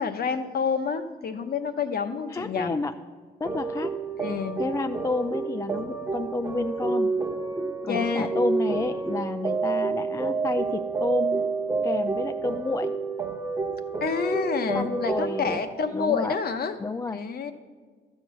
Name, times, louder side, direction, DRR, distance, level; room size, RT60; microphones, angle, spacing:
voice 1, 0.0-2.7 4.2-4.6 7.8-8.3 14.0-16.8 17.1-17.5, left 6 dB, 50° left, 8 dB, 0.9 m, -28 dB
voice 2, 2.3-2.9 3.4-3.9 4.6-7.1 7.8-11.5 11.8-12.9 14.7-15.6 15.9-16.4 16.8-17.2, left 3 dB, 15° left, 8 dB, 0.3 m, -30 dB
sound 1, 3.4-15.6, right 4 dB, 15° right, 1.1 m, -29 dB
12.5 x 4.5 x 8.2 m, 1.5 s
cardioid pair, 90°, 20 cm